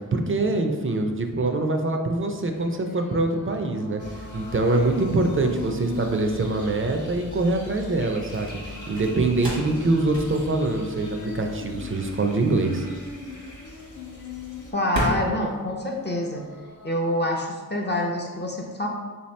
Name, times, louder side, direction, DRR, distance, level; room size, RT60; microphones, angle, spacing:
voice 1, 0.0-12.9, right 2 dB, 40° right, 4 dB, 0.4 m, -24 dB
sound 1, 2.4-17.4, left 4 dB, 85° left, 0.5 m, -41 dB
sound 2, 3.7-16.8, right 1 dB, 85° right, 1.0 m, -37 dB
sound 3, 4.0-14.7, left 2 dB, 60° left, 0.9 m, -42 dB
voice 2, 14.7-16.4 16.8-18.9, left 1 dB, 30° left, -1 dB, 0.4 m, -26 dB
3.5 x 2.8 x 3.1 m, 1.4 s
wide cardioid pair, 70°, 35 cm